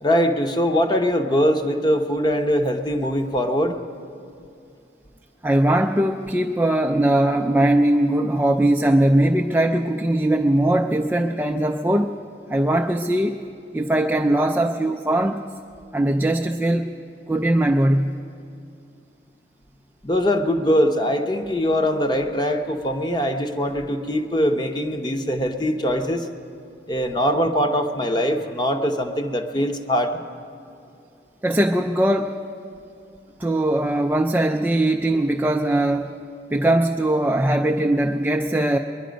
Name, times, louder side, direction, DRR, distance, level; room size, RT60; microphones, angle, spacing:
voice 1, 0.0-3.7 20.0-26.3 26.9-30.2, equal, 25° left, 6 dB, 0.8 m, -22 dB
voice 2, 5.4-12.1 12.5-13.4 13.7-15.4 15.9-16.9 17.3-18.2 31.4-32.4 33.4-36.1 36.5-38.8, right 1 dB, 10° right, 3 dB, 0.3 m, -20 dB
21.5 x 11.0 x 5.1 m, 2.5 s
head